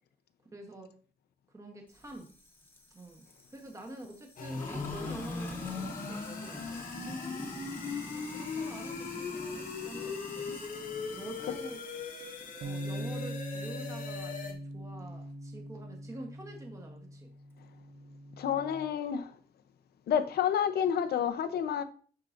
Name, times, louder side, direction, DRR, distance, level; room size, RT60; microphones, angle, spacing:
voice 1, 0.4-0.9 1.5-2.3 2.9-3.3 3.5-7.7 8.1-10.5 11.1-11.8 12.6-17.3, right 1 dB, 20° right, 1.1 m, -47 dB
Sink (filling or washing), 1.9-14.2, left 1 dB, 15° left, 1.0 m, -46 dB
sound 1, 4.4-14.5, left 5 dB, 60° left, 1.1 m, -39 dB
sound 2, 12.6-18.9, equal, 80° right, 0.8 m, -42 dB
voice 2, 18.4-19.3 20.1-21.8, left 8 dB, 80° left, 0.7 m, -29 dB
11.5 x 4.7 x 2.5 m
wide cardioid pair, 175°, 16 cm